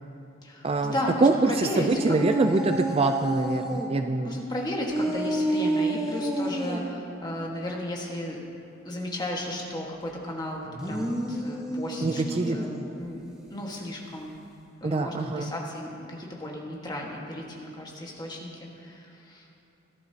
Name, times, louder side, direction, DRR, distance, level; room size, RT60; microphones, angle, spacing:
voice 1, 0.4-2.2 4.2-8.4 8.8-12.7 12.9-13.2 13.5-14.3 14.8-19.5, left 1 dB, 20° left, -2 dB, 1.5 m, -34 dB
voice 2, 1.2-4.4 12.0-12.6 14.8-15.5, right 3 dB, 30° right, 6 dB, 0.3 m, -24 dB
sound 1, 1.9-3.9 4.9-6.8 10.7-12.9, right 1 dB, 5° right, 1.2 m, -29 dB
17.5 x 11.0 x 2.8 m, 2.8 s
head